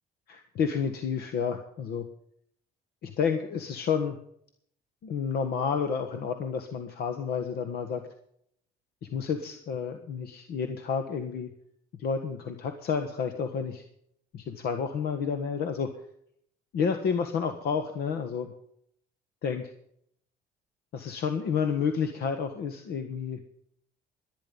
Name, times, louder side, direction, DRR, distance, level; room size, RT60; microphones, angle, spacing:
voice 1, 0.3-2.1 3.0-4.2 5.0-8.0 9.1-11.5 12.0-13.8 14.3-15.9 16.7-18.5 19.4-19.7 20.9-23.4, left 6 dB, 70° left, 7 dB, 1.6 m, -30 dB
21.5 x 10.0 x 5.5 m, 0.69 s
cardioid pair, 110°, 17 cm